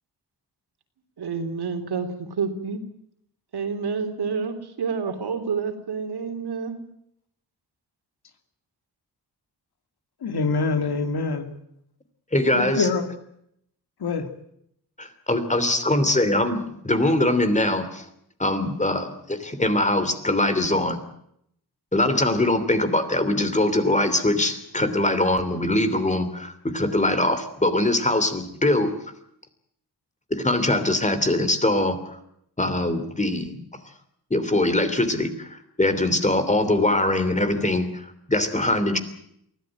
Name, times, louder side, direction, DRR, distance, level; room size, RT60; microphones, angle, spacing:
voice 1, 1.2-2.8 3.5-6.8, right 5 dB, 70° right, 6 dB, 3.5 m, -28 dB
voice 2, 10.2-11.5 12.5-13.1 14.0-14.3, left 4 dB, 65° left, 7 dB, 2.7 m, -25 dB
voice 3, 12.3-12.9 15.0-18.0 18.4-21.0 21.9-28.9 30.3-32.0 32.6-33.6 34.3-39.0, left 1 dB, 15° left, 10 dB, 3.1 m, -22 dB
23.5 x 16.5 x 9.1 m, 0.73 s
wide cardioid pair, 110°, 41 cm